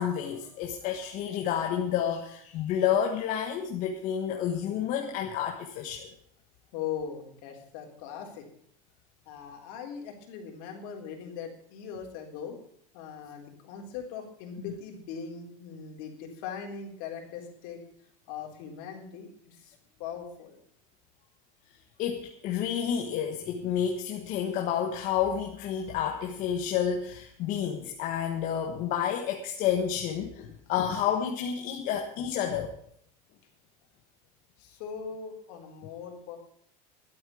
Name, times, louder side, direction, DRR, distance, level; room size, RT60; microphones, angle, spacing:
voice 1, 0.0-6.1 22.0-32.7, left 9 dB, 45° left, 3 dB, 1.4 m, -30 dB
voice 2, 6.7-8.4 9.3-12.6 12.9-17.8 18.3-20.6 34.6-36.4, left 7 dB, 60° left, 2 dB, 4.0 m, -40 dB
12.0 x 8.6 x 8.4 m, 0.65 s
cardioid pair, 165°, 20 cm